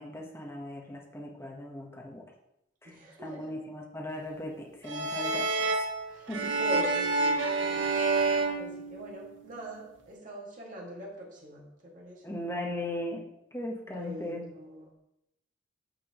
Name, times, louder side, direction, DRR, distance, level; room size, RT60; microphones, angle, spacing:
voice 1, 0.0-2.2 2.8-2.9 3.2-5.8 6.3-6.5 12.2-13.2 13.5-14.4, left 1 dB, 15° left, -1 dB, 1.2 m, -38 dB
voice 2, 2.8-3.5 6.1-6.3 6.6-12.2 13.9-14.9, right 1 dB, 45° right, -4 dB, 2.0 m, -43 dB
sound 1, 4.9-9.5, right 3 dB, 70° right, 0.9 m, -29 dB
9.0 x 5.9 x 3.0 m, 0.85 s
head